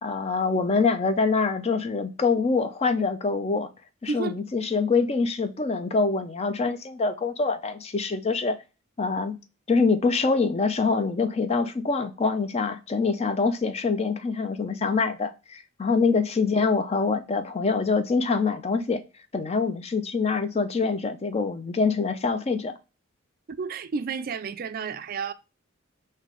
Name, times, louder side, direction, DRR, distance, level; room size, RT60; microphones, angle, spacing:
voice 1, 0.0-3.7 4.0-8.6 9.0-9.4 9.7-19.0 19.3-22.7, left 4 dB, 30° left, 0.4 m, -25 dB
voice 2, 4.1-4.4 23.5-25.3, right 5 dB, 45° right, 0.3 m, -31 dB
3.6 x 2.7 x 3.6 m
head